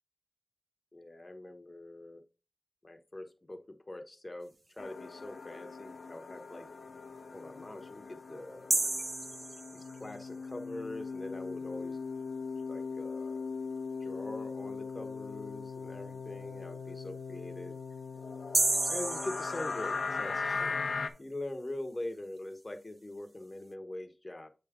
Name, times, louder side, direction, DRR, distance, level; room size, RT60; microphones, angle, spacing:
voice 1, 0.9-2.2 2.8-6.7 7.3-8.9 9.7-12.0 12.7-13.4 14.0-17.8 18.9-24.5, left 1 dB, 25° left, 6 dB, 1.1 m, -43 dB
sound 1, 4.8-21.1, left 4 dB, 70° left, 0.8 m, -39 dB
sound 2, 8.7-10.2 18.5-20.3, right 2 dB, 30° right, 0.4 m, -32 dB
7.7 x 3.6 x 4.7 m, 0.31 s
wide cardioid pair, 90°, 0 cm